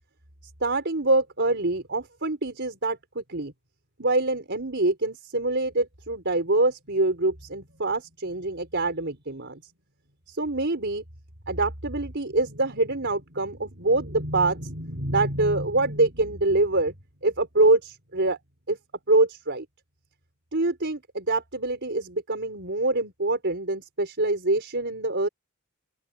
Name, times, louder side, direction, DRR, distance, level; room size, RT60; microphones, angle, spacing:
voice 1, 0.6-3.5 4.0-9.6 10.3-11.0 11.5-16.9 17.2-18.4 18.7-18.8 19.1-19.6 20.5-25.3, right 2 dB, 50° right, 4.9 m, -25 dB
open air
head